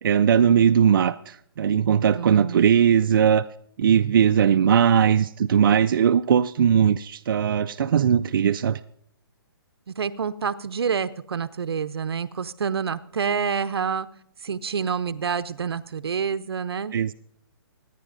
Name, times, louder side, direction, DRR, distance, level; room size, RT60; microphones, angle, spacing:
voice 1, 0.0-3.4 3.8-8.8 16.9-17.1, right 8 dB, 60° right, 0.4 m, -19 dB
voice 2, 2.1-2.6 9.9-14.1 14.4-17.0, right 6 dB, 90° right, 0.7 m, -28 dB
24.5 x 9.9 x 2.6 m
hypercardioid pair, 165°, 13 cm